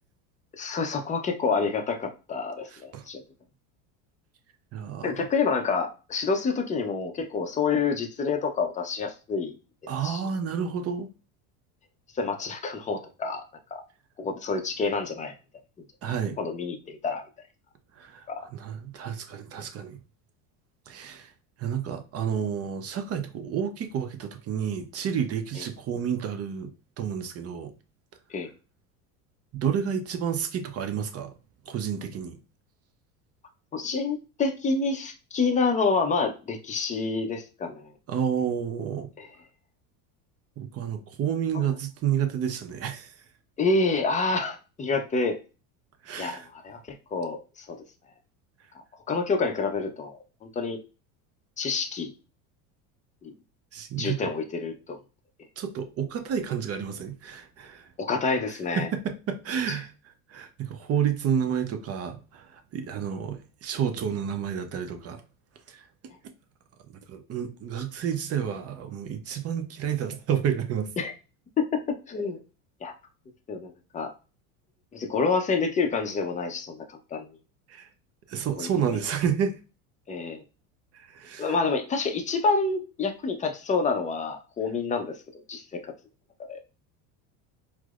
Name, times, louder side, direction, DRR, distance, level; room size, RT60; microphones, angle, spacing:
voice 1, 0.6-3.2 5.0-9.5 10.0-10.2 12.2-13.4 13.7-13.8 14.2-15.3 16.4-17.2 18.3-18.5 25.6-25.7 28.3-28.5 33.7-37.9 39.2-39.3 41.5-41.6 43.6-45.4 46.2-46.8 47.1-47.8 49.1-50.8 51.6-52.1 53.2-53.3 54.0-55.0 58.0-58.9 71.0-71.1 71.6-72.4 72.8-72.9 73.5-74.1 74.9-76.8 77.1-77.3 78.6-78.7 80.1-80.4 81.4-85.2 85.5-85.8 86.5-86.6, left 4 dB, 15° left, 0.5 m, -28 dB
voice 2, 2.7-3.0 4.7-5.3 9.9-11.1 16.0-16.4 18.0-18.2 18.5-20.0 20.9-21.3 21.6-27.7 29.5-31.3 31.7-32.4 38.1-39.1 40.6-43.1 46.0-46.5 53.7-54.2 55.6-57.9 58.8-59.9 60.3-65.2 65.7-65.8 66.9-70.9 77.7-77.8 78.3-79.5 80.9-81.6, right 8 dB, 35° right, 0.6 m, -30 dB
4.6 x 2.1 x 2.4 m
supercardioid pair, 100°, 43 cm